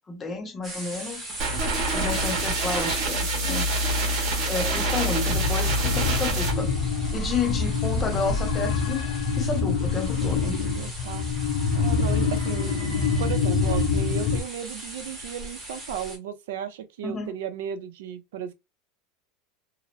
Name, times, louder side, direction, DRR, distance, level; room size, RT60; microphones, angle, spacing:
voice 1, 0.1-1.3 1.9-3.7 4.5-6.7 7.1-9.1 9.4-10.6 17.0-17.3, left 4 dB, 15° left, 0.4 m, -31 dB
sound 1, 0.6-16.2, right 1 dB, 10° right, 0.9 m, -39 dB
sound 2, 1.4-6.5, right 1 dB, 40° right, 1.0 m, -26 dB
sound 3, 5.2-14.4, left 4 dB, 75° left, 0.7 m, -26 dB
voice 2, 10.2-11.3 11.7-18.5, right 8 dB, 80° right, 0.5 m, -35 dB
2.8 x 2.0 x 2.5 m
supercardioid pair, 170°, 0 cm